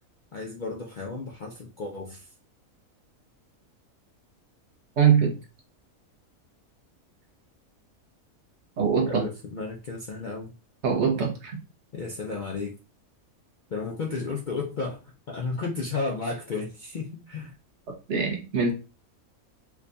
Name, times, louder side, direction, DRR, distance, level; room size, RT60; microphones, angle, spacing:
voice 1, 0.3-2.3 9.1-10.5 11.9-12.7 13.7-15.0 15.3-17.5, left 4 dB, 70° left, 0.4 m, -33 dB
voice 2, 5.0-5.3 8.8-9.2 10.8-11.6 18.1-18.7, right 7 dB, 55° right, 1.2 m, -22 dB
4.7 x 2.3 x 2.6 m
omnidirectional pair, 1.5 m